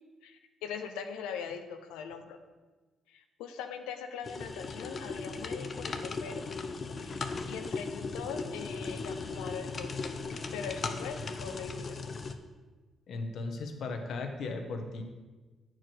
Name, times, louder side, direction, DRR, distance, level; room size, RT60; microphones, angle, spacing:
voice 1, 0.2-2.4 3.1-6.5 7.0-10.1 10.5-12.1, left 7 dB, 90° left, 6 dB, 0.6 m, -41 dB
sound 1, 4.2-12.3, left 4 dB, 50° left, 0.7 m, -37 dB
voice 2, 13.1-15.0, left 3 dB, 70° left, 5 dB, 1.1 m, -36 dB
8.8 x 4.7 x 6.3 m, 1.3 s
supercardioid pair, 55°, 0 cm